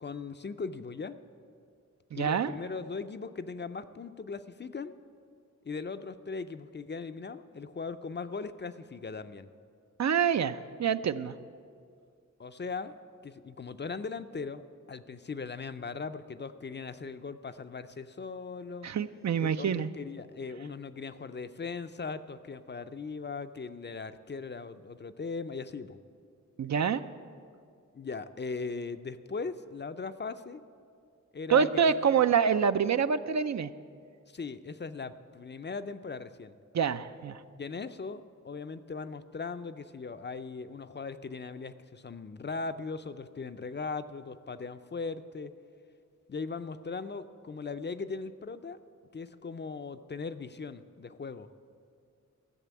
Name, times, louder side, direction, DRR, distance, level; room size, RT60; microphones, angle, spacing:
voice 1, 0.0-1.2 2.1-5.0 5.6-9.5 12.4-12.9 13.2-18.9 19.4-26.0 27.9-30.6 31.3-32.2 34.3-36.6 37.5-45.5 46.3-48.8 49.1-51.5, left 4 dB, 35° left, 11 dB, 0.4 m, -39 dB
voice 2, 2.1-2.5 10.0-11.4 18.8-19.9 26.6-27.0 31.5-33.7 36.7-37.4, right 7 dB, 65° right, 12 dB, 0.5 m, -26 dB
14.5 x 6.8 x 8.2 m, 2.3 s
wide cardioid pair, 95°, 31 cm